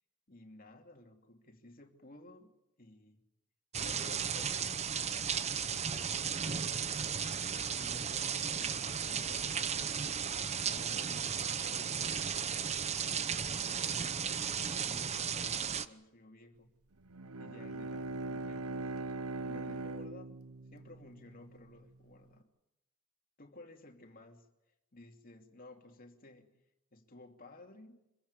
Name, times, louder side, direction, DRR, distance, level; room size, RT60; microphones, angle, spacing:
voice 1, 0.3-2.5 2.8-3.2 3.8-4.9 5.6-6.6 7.7-9.8 10.6-12.8 13.4-14.4 14.9-16.7 17.4-19.0 19.4-20.5 20.7-22.5 23.4-24.5 24.9-26.5 26.9-28.0, left 2 dB, 40° left, 3 dB, 2.7 m, -55 dB
sound 1, 3.7-15.9, right 7 dB, 30° right, 0.8 m, -35 dB
Bowed string instrument, 17.1-21.7, right 2 dB, 90° right, 1.0 m, -41 dB
25.5 x 15.0 x 9.7 m, 0.89 s
head